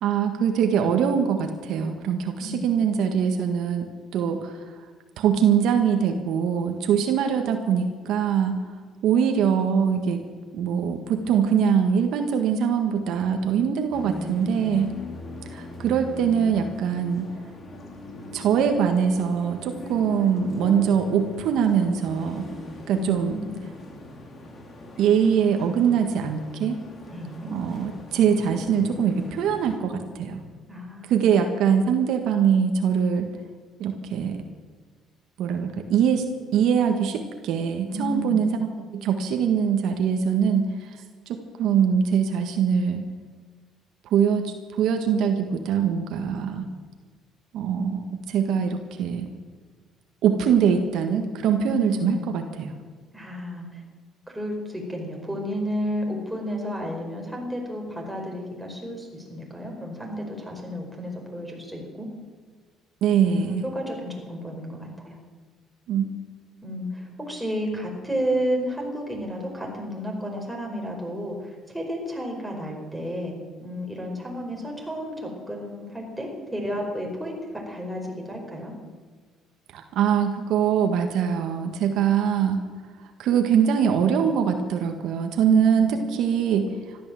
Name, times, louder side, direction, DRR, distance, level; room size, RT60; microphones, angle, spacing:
voice 1, 0.0-4.6 5.2-8.6 9.0-10.2 10.5-14.9 15.4-17.3 18.3-22.4 22.9-23.4 25.0-26.8 27.5-30.4 31.1-33.3 33.8-34.4 35.4-41.0 41.3-43.0 44.1-46.7 47.5-49.3 50.2-52.7 63.0-63.7 65.9-66.0 79.7-82.6 83.2-87.0, right 7 dB, 70° right, 5 dB, 1.6 m, -23 dB
voice 2, 2.4-2.7 22.9-23.6 27.1-27.5 30.7-31.3 37.9-38.5 51.5-52.3 53.1-53.8 54.3-62.1 63.2-65.2 66.6-73.3 73.6-78.7 85.4-85.9, equal, ahead, -1 dB, 4.8 m, -32 dB
sound 1, 13.9-29.8, left 2 dB, 35° left, 3.2 m, -40 dB
14.5 x 12.5 x 7.7 m, 1.5 s
cardioid pair, 110°, 0 cm